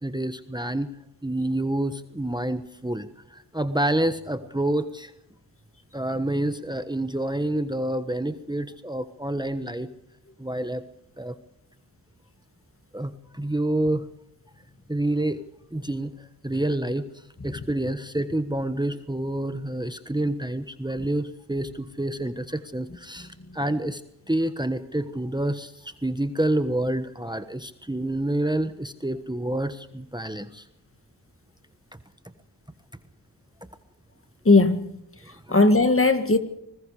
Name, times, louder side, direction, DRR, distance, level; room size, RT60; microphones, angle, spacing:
voice 1, 0.0-0.9 1.2-5.1 5.9-9.9 10.4-10.8 11.2-11.3 12.9-14.1 14.9-15.4 15.7-16.1 16.4-17.1 17.4-24.0 24.3-30.6 35.2-35.6, right 1 dB, 10° right, 1.3 m, -28 dB
voice 2, 34.5-35.0 35.5-36.4, left 3 dB, 30° left, 1.9 m, -18 dB
26.5 x 20.5 x 4.9 m
wide cardioid pair, 65°, 42 cm